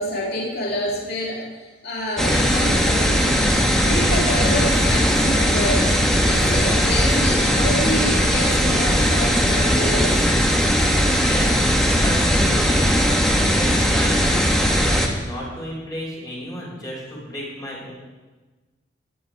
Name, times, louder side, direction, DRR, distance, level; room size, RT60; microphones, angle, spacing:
voice 1, 0.0-3.4 3.8-5.8 6.2-10.2, left 1 dB, 55° left, -3 dB, 2.8 m, -27 dB
sound 1, 2.2-15.1, equal, 5° left, 1.6 m, -18 dB
voice 2, 11.2-11.7 11.9-17.9, equal, 20° left, -5 dB, 6.0 m, -33 dB
16.5 x 11.0 x 4.8 m, 1.2 s
head